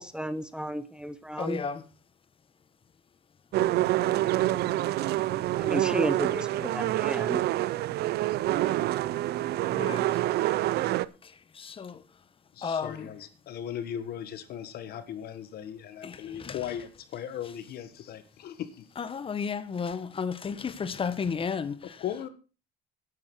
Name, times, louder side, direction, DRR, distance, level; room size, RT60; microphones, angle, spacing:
voice 1, 0.0-1.6 5.6-7.4, right 1 dB, 5° right, 0.9 m, -33 dB
voice 2, 1.4-1.9 9.7-10.2 11.2-12.3 12.6-13.1 16.0-16.7 19.0-22.0, left 6 dB, 30° left, 1.3 m, -34 dB
sound 1, 3.5-11.0, right 15 dB, 70° right, 0.6 m, -27 dB
voice 3, 12.5-18.9 22.0-22.3, left 10 dB, 70° left, 1.7 m, -38 dB
9.9 x 8.8 x 6.3 m
cardioid pair, 110°, 17 cm